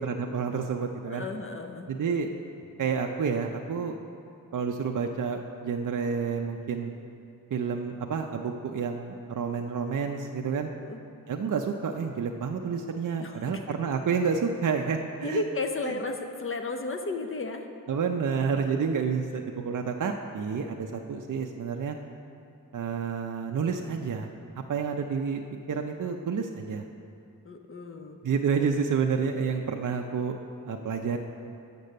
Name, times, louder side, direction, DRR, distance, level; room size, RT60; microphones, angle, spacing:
voice 1, 0.0-1.3 1.9-2.3 2.8-4.0 4.5-6.9 7.5-10.7 11.3-15.4 15.9-16.0 17.9-22.0 22.7-24.3 24.7-25.4 25.7-26.8 28.2-30.4 30.6-31.2, right 6 dB, 60° right, 3 dB, 0.5 m, -29 dB
voice 2, 1.1-1.9 10.9-11.0 13.2-13.6 15.2-17.7 27.4-28.2, left 3 dB, 40° left, 6 dB, 0.7 m, -33 dB
6.7 x 6.7 x 6.4 m, 2.5 s
wide cardioid pair, 90°, 34 cm